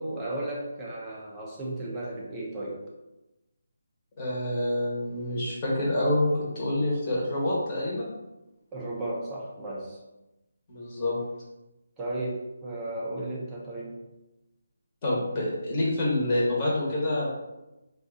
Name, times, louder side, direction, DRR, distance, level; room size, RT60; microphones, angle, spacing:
voice 1, 0.0-2.8 8.7-10.0 12.0-14.0, right 1 dB, 10° right, -4 dB, 0.5 m, -34 dB
voice 2, 4.2-8.1 10.7-11.2 15.0-17.4, left 1 dB, 25° left, -6 dB, 1.0 m, -27 dB
2.6 x 2.3 x 3.7 m, 0.99 s
hypercardioid pair, 170°, 0 cm